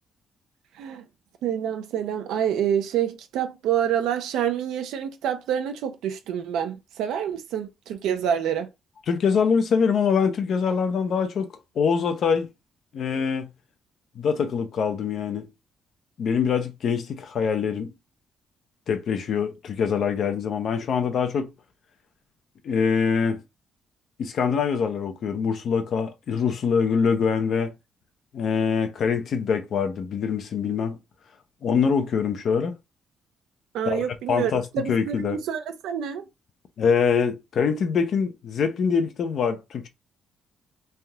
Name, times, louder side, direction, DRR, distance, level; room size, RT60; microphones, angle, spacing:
voice 1, 0.7-1.1 1.4-8.7 33.7-36.3, right 9 dB, 85° right, 0.6 m, -27 dB
voice 2, 9.1-11.5 11.8-12.5 12.9-13.5 14.2-15.5 16.2-17.9 18.9-21.5 22.6-23.4 24.2-27.7 28.3-31.0 31.6-32.7 33.9-34.0 34.3-35.4 36.8-39.9, left 6 dB, 65° left, 0.6 m, -24 dB
3.4 x 2.8 x 2.3 m
cardioid pair, 90°, 0 cm